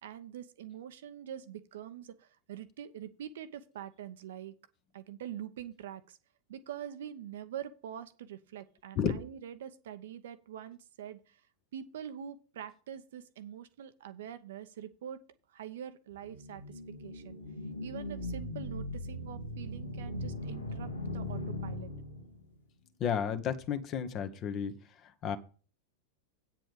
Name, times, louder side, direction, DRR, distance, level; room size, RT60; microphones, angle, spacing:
voice 1, 0.0-4.5 4.9-6.2 6.5-11.4 11.7-15.2 15.5-17.4 17.8-21.9, right 10 dB, 60° right, 0.8 m, -45 dB
sound 1, 16.2-22.5, left 1 dB, 80° left, 1.7 m, -39 dB
voice 2, 23.0-24.8 25.2-25.4, left 7 dB, 35° left, 1.1 m, -32 dB
8.8 x 7.5 x 5.1 m
figure-of-eight pair, 90°, 0 cm